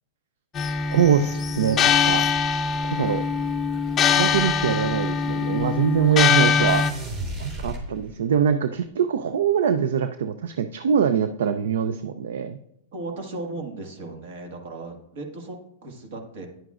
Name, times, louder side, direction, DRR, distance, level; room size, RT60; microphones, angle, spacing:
sound 1, 0.6-6.9, left 6 dB, 20° left, 0.5 m, -22 dB
voice 1, 0.9-2.3 2.8-3.2 4.1-6.8 7.4-12.6, right 7 dB, 80° right, 10 dB, 0.4 m, -23 dB
sound 2, 6.7-8.4, right 1 dB, 40° right, 3.1 m, -33 dB
voice 2, 12.9-16.5, right 2 dB, 65° right, 3 dB, 1.8 m, -36 dB
10.0 x 9.0 x 2.5 m, 0.77 s
hypercardioid pair, 140°, 0 cm